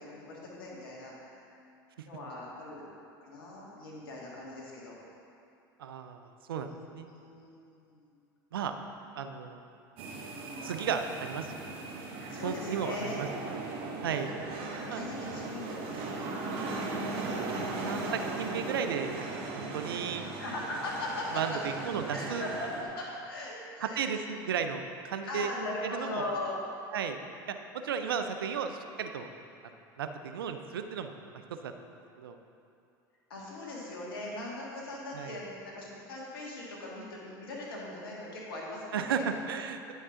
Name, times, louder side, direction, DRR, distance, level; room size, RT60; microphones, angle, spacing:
voice 1, 0.0-1.4 2.0-2.9 3.2-5.0 6.5-8.1 12.3-13.2 14.2-16.9 20.4-21.6 22.1-24.2 25.3-26.6 33.3-39.3, left 2 dB, 80° left, -4 dB, 1.8 m, -40 dB
voice 2, 5.8-7.1 8.5-8.8 9.2-9.7 10.6-11.5 12.4-13.3 13.5-13.6 14.0-14.3 14.9-15.0 17.8-20.3 21.3-22.5 23.8-25.5 25.8-26.2 26.9-27.2 27.5-29.3 30.0-31.1 31.6-31.7 32.2-32.4 35.1-35.4 38.9-39.9, right 7 dB, 85° right, 7 dB, 0.5 m, -34 dB
sound 1, 10.0-22.8, right 3 dB, 55° right, 1.1 m, -38 dB
9.5 x 5.4 x 3.7 m, 2.5 s
hypercardioid pair, 85°, 12 cm